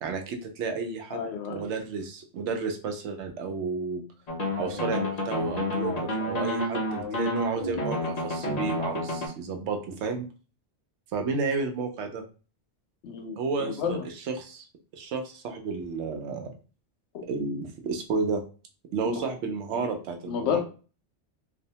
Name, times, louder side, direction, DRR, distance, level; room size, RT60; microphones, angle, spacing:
voice 1, 0.0-1.2 1.5-4.0 4.6-10.3 11.1-12.2 13.4-14.0 14.3-14.7 14.9-16.5 17.3-18.4 18.9-20.6, right 4 dB, 80° right, 4 dB, 0.9 m, -31 dB
voice 2, 1.1-1.6 13.0-14.0 17.1-17.2 19.0-19.2 19.7-19.9 20.3-20.6, left 7 dB, 70° left, 3 dB, 0.9 m, -31 dB
sound 1, 4.3-9.3, left 1 dB, 45° left, 0.6 m, -30 dB
2.6 x 2.1 x 2.7 m, 0.36 s
omnidirectional pair, 1.2 m